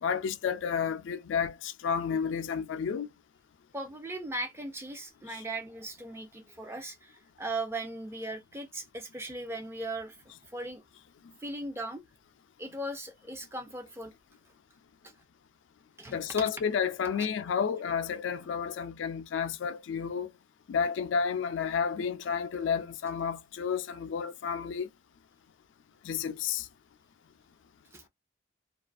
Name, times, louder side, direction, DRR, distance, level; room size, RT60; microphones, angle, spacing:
voice 1, 0.0-3.1 16.1-20.3 20.7-24.9 26.0-26.7, left 6 dB, 85° left, 0.3 m, -31 dB
voice 2, 3.7-10.8 11.4-12.0 12.6-14.1 15.0-15.1 16.0-16.5 17.1-17.3 27.9-28.1, right 2 dB, 15° right, 0.4 m, -38 dB
2.4 x 2.3 x 2.4 m
head